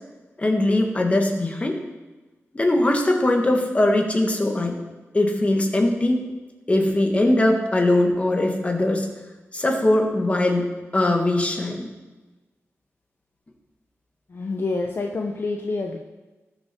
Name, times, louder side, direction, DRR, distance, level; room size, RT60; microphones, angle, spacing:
voice 1, 0.4-1.8 2.5-4.8 5.1-6.2 6.7-9.1 9.5-11.9, left 1 dB, 25° left, 2 dB, 1.8 m, -21 dB
voice 2, 14.3-16.0, left 3 dB, 50° left, 3 dB, 0.8 m, -27 dB
19.0 x 6.9 x 4.5 m, 1.2 s
wide cardioid pair, 105°, 5 cm